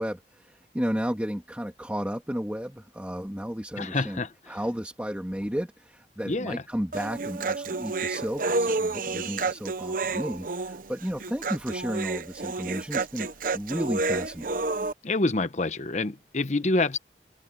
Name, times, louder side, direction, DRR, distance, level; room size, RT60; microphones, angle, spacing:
voice 1, 0.0-4.2 4.5-13.3 13.5-14.6, equal, 10° right, 2.0 m, -33 dB
voice 2, 3.8-4.3 6.2-6.6 15.0-17.0, left 2 dB, 40° left, 0.9 m, -27 dB
Human voice, 6.9-14.9, right 3 dB, 50° right, 0.8 m, -30 dB
open air
head